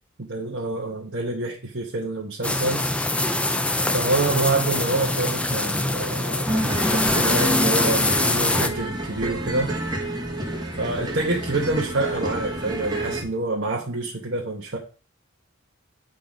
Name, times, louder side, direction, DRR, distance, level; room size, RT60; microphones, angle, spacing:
voice 1, 0.2-2.9 3.9-9.7 10.8-14.8, right 2 dB, 55° right, 1.1 m, -27 dB
sound 1, 2.4-8.7, left 2 dB, 5° left, 0.3 m, -24 dB
sound 2, 6.5-13.2, right 1 dB, 20° right, 1.3 m, -28 dB
9.0 x 3.9 x 5.1 m
head